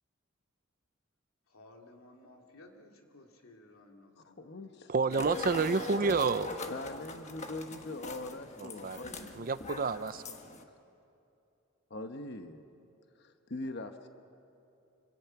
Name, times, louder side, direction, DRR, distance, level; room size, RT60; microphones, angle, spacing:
voice 1, 1.5-4.8, left 2 dB, 85° left, 2 dB, 2.7 m, -57 dB
voice 2, 4.2-4.9 6.7-9.5 11.9-12.7 13.2-14.1, left 2 dB, 50° left, 7 dB, 1.0 m, -42 dB
voice 3, 4.9-6.5 8.6-9.0 9.4-10.4, right 4 dB, 40° right, 13 dB, 0.5 m, -29 dB
sound 1, 5.1-10.6, left 2 dB, 35° left, 1.3 m, -42 dB
26.0 x 25.0 x 5.9 m, 2.7 s
head